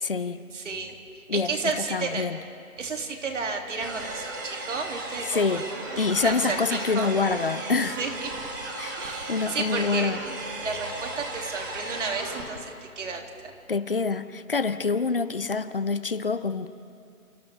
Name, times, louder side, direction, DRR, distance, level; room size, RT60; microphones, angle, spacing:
voice 1, 0.0-0.4 1.3-1.5 1.9-2.4 5.3-5.6 6.0-8.0 8.8-9.0 9.3-10.2 13.7-16.7, left 4 dB, 40° left, 13 dB, 0.6 m, -26 dB
voice 2, 0.5-2.2 2.8-5.6 6.0-7.1 8.0-8.3 9.0-10.1 10.6-13.5, right 4 dB, 50° right, 2 dB, 2.8 m, -32 dB
sound 1, 3.8-12.4, right 2 dB, 15° right, 1.2 m, -35 dB
29.0 x 28.0 x 3.5 m, 2.4 s
hypercardioid pair, 165°, 45 cm